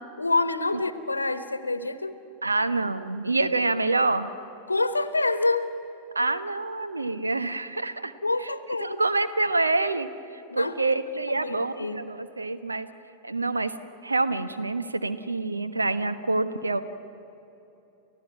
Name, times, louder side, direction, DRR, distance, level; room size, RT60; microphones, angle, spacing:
voice 1, 0.2-2.2 4.7-5.7 8.2-9.0 10.5-10.7 11.3-12.0, left 2 dB, 80° left, 12 dB, 1.1 m, -27 dB
voice 2, 2.4-4.3 6.1-8.1 8.4-8.5 8.8-12.9 13.2-13.7 14.0-16.8, right 3 dB, 80° right, 11 dB, 1.1 m, -26 dB
30.0 x 15.0 x 9.3 m, 2.9 s
figure-of-eight pair, 90°, 0 cm